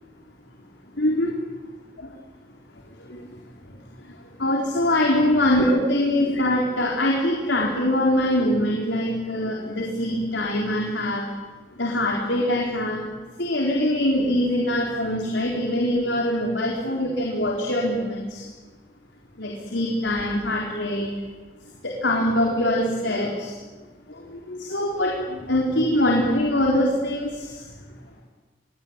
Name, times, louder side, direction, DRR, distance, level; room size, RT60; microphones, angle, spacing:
voice 1, 1.0-1.3 2.0-2.1 3.0-3.2 4.4-11.3 11.8-13.1 13.4-18.4 19.4-21.1 21.8-23.5 24.3-27.6, left 1 dB, 85° left, -1 dB, 4.2 m, -23 dB
28.0 x 22.0 x 8.9 m, 1.3 s
head